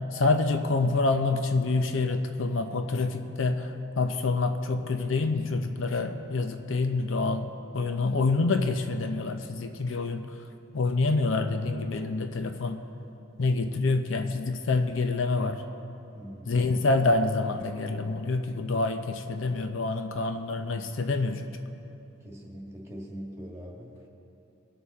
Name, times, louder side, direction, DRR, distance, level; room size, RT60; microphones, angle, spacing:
voice 1, 0.1-10.2 10.7-12.8 13.4-15.6 16.5-21.5, left 3 dB, 65° left, 7 dB, 0.6 m, -27 dB
voice 2, 16.1-16.7 22.2-24.1, equal, 15° right, -3 dB, 1.7 m, -42 dB
20.5 x 6.9 x 4.2 m, 2.9 s
head